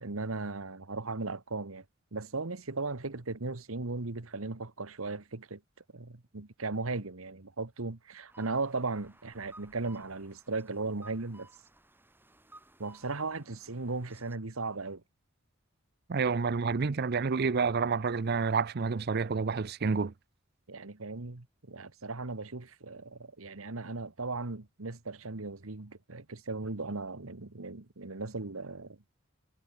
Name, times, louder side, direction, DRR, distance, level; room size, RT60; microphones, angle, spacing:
voice 1, 0.0-1.8 2.1-5.6 5.9-11.5 12.8-15.0 20.7-29.0, right 3 dB, 80° right, 1.5 m, -37 dB
sound 1, 8.3-14.4, right 2 dB, 10° right, 3.8 m, -58 dB
voice 2, 16.1-20.1, right 5 dB, 50° right, 0.6 m, -29 dB
head